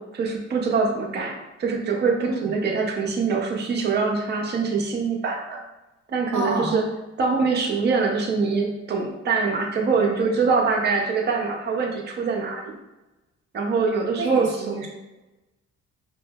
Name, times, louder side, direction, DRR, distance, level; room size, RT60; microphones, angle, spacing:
voice 1, 0.0-5.6 6.1-6.8 7.2-12.7 13.5-14.8, right 4 dB, 35° right, 1 dB, 0.6 m, -24 dB
voice 2, 2.2-2.6 6.3-6.9 14.2-14.9, right 2 dB, 85° right, 0 dB, 0.8 m, -28 dB
5.1 x 2.0 x 2.3 m, 1.0 s
cardioid pair, 90°, 30 cm